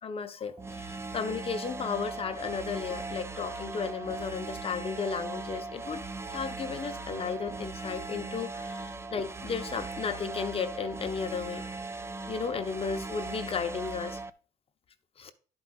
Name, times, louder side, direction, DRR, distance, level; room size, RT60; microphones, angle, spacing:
voice 1, 0.0-6.0 6.3-11.6 12.3-14.2 15.2-15.3, left 6 dB, 35° left, 1.0 m, -34 dB
sound 1, 0.6-14.3, right 3 dB, 15° right, 0.5 m, -39 dB
11.0 x 4.8 x 4.0 m
cardioid pair, 110°, 17 cm